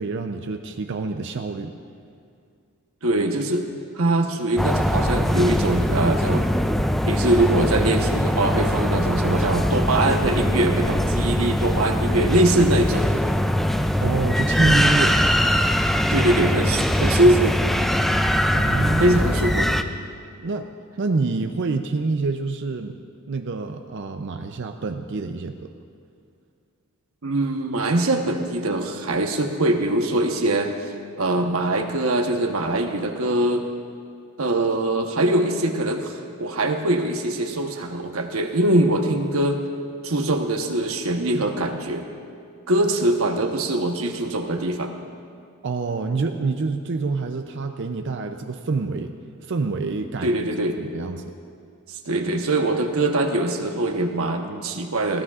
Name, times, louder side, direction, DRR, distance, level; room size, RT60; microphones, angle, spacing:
voice 1, 0.0-1.7 14.0-15.2 18.5-19.2 20.4-20.7 21.0-23.0 23.3-25.7 45.6-49.1 49.4-50.3 50.8-51.2, right 3 dB, 60° right, 6 dB, 0.5 m, -27 dB
voice 2, 3.0-3.7 3.9-6.5 7.0-13.1 16.1-17.6 19.0-19.7 27.2-30.7 31.2-33.6 34.4-39.6 40.0-42.1 42.7-44.9 50.2-50.8 51.9-55.2, right 1 dB, 75° right, 4 dB, 1.1 m, -22 dB
sound 1, 4.6-19.8, equal, ahead, 0.4 m, -21 dB
20.5 x 16.0 x 2.4 m, 2.3 s
head